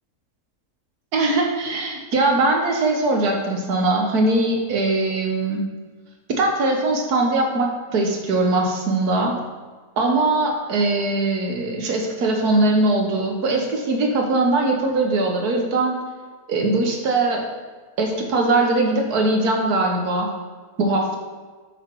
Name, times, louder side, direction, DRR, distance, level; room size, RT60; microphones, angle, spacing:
voice 1, 1.1-5.6 6.4-9.4 10.0-16.0 16.5-17.4 18.0-20.3 20.8-21.2, right 2 dB, 80° right, 1 dB, 1.7 m, -21 dB
7.7 x 6.2 x 4.6 m, 1.5 s
omnidirectional pair, 1.6 m